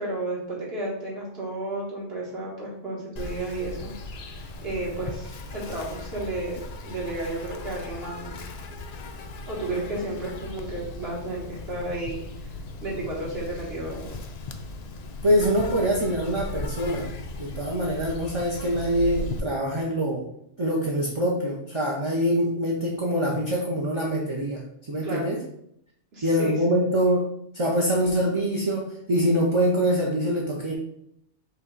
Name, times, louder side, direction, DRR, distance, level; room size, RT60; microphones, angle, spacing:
voice 1, 0.0-8.4 9.5-12.5 12.8-14.2 25.0-25.3 26.1-26.5, right 2 dB, 55° right, -4 dB, 1.7 m, -33 dB
Insect, 3.2-19.4, left 3 dB, 75° left, 0.3 m, -37 dB
voice 2, 15.2-17.1 17.4-20.2 20.6-25.4 26.2-27.3 27.5-30.8, equal, 35° right, -2 dB, 0.5 m, -24 dB
5.4 x 2.3 x 3.9 m, 0.73 s
omnidirectional pair, 1.2 m